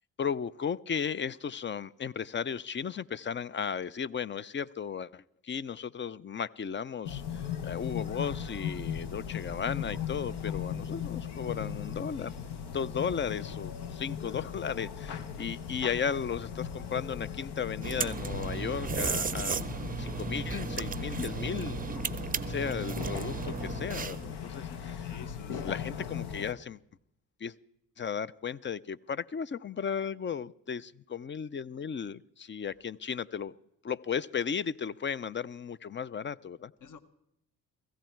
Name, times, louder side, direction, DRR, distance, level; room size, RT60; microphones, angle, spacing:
voice 1, 0.2-12.3 12.7-19.7 20.0-21.9 22.5-25.1 25.5-26.8 27.4-27.5 28.0-33.5 33.8-36.7, left 7 dB, 30° left, 0.5 m, -35 dB
sound 1, 7.1-26.5, left 7 dB, 70° left, 1.1 m, -38 dB
voice 2, 14.2-14.5 24.9-25.7 36.8-37.0, left 7 dB, 45° left, 1.1 m, -50 dB
sound 2, 17.8-24.3, right 5 dB, 20° right, 0.6 m, -35 dB
16.0 x 15.5 x 4.5 m
supercardioid pair, 55°, 41 cm